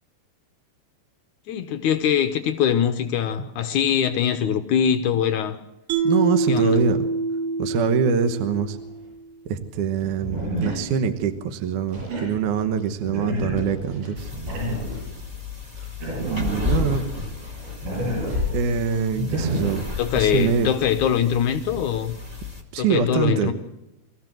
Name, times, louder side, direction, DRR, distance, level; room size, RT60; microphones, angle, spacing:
voice 1, 1.5-5.6 6.5-6.8 20.0-22.2 22.8-23.5, left 8 dB, 75° left, 1.8 m, -22 dB
Mallet percussion, 5.9-9.2, right 3 dB, 50° right, 2.0 m, -25 dB
voice 2, 6.0-7.0 7.6-8.8 9.5-14.3 16.2-17.1 18.5-19.8 20.1-20.7 22.7-23.5, right 6 dB, 65° right, 2.1 m, -24 dB
sound 1, 8.6-8.7 10.0-11.4 11.9-15.1 15.8-19.8, equal, 80° right, 10.5 m, -29 dB
sound 2, 14.2-22.6, left 4 dB, 30° right, 0.6 m, -33 dB
24.5 x 14.5 x 7.6 m
omnidirectional pair, 5.0 m